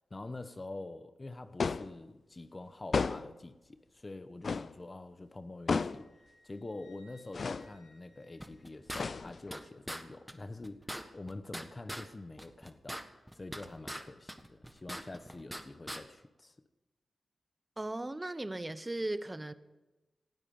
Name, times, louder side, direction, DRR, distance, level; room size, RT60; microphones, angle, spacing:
voice 1, 0.1-6.1 6.4-13.0 13.3-16.5, left 2 dB, 35° left, 1.0 m, -46 dB
sound 1, 1.6-2.0 2.9-3.4 4.4-4.8 5.7-6.1 7.3-7.7 8.9-9.5, left 4 dB, 60° left, 0.5 m, -33 dB
Wind instrument woodwind instrument, 5.7-9.2, left 1 dB, 75° left, 3.7 m, -66 dB
sound 2, 8.4-9.6 9.9-10.0 10.3-10.4 10.6-12.1 12.4-14.0 14.3-15.6 15.9-16.0, equal, ahead, 1.6 m, -41 dB
voice 2, 17.8-19.5, right 2 dB, 20° right, 1.1 m, -37 dB
19.0 x 13.0 x 5.5 m
cardioid pair, 60°, 0 cm